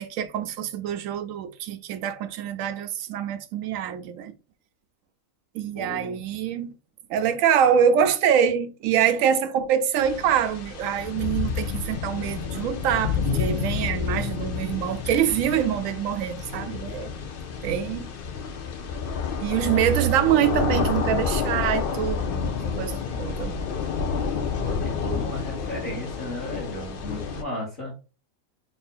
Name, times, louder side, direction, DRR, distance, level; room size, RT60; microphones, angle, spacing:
voice 1, 0.0-4.3 5.5-6.7 7.1-17.1 17.6-18.1 19.4-23.5, right 9 dB, 70° right, 0.9 m, -25 dB
voice 2, 5.7-6.2 24.6-27.9, equal, 40° left, 1.3 m, -34 dB
sound 1, 10.0-27.4, left 6 dB, 60° left, 0.6 m, -29 dB
3.4 x 2.1 x 4.2 m
omnidirectional pair, 1.5 m